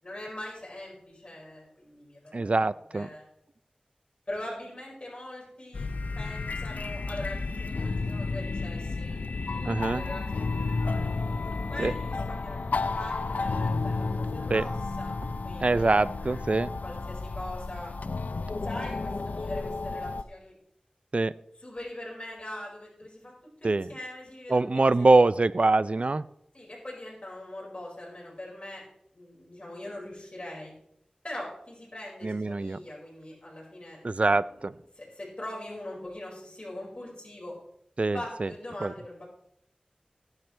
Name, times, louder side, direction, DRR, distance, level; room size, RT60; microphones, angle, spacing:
voice 1, 0.0-2.7 2.9-3.2 4.3-5.9 6.1-11.1 11.7-15.9 16.2-16.4 16.8-17.9 18.6-20.5 21.6-23.3 23.6-25.1 26.5-28.8 29.1-30.7 31.2-34.3 34.9-37.5 38.1-39.3, left 1 dB, 45° left, -3 dB, 5.1 m, -42 dB
voice 2, 2.3-3.1 9.6-10.0 11.8-11.9 14.5-14.7 15.6-16.7 21.1-21.3 23.6-23.9 24.5-26.2 32.2-32.8 34.0-34.8 38.0-38.5 38.8-38.9, right 3 dB, 50° right, 15 dB, 0.4 m, -24 dB
sound 1, 5.7-20.2, left 3 dB, 85° left, 0.4 m, -32 dB
17.0 x 10.5 x 3.3 m, 0.76 s
wide cardioid pair, 65°, 3 cm